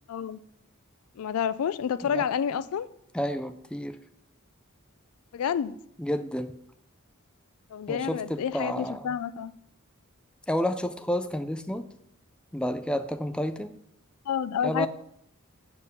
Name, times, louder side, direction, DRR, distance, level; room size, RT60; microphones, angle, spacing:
voice 1, 0.1-0.4 1.2-2.9 5.3-5.8 7.7-9.5 14.3-14.9, left 8 dB, 80° left, 0.4 m, -29 dB
voice 2, 3.1-4.0 6.0-6.5 7.9-9.1 10.5-11.8 12.5-13.8 14.6-14.9, equal, 5° left, 0.3 m, -30 dB
6.9 x 4.4 x 6.6 m
head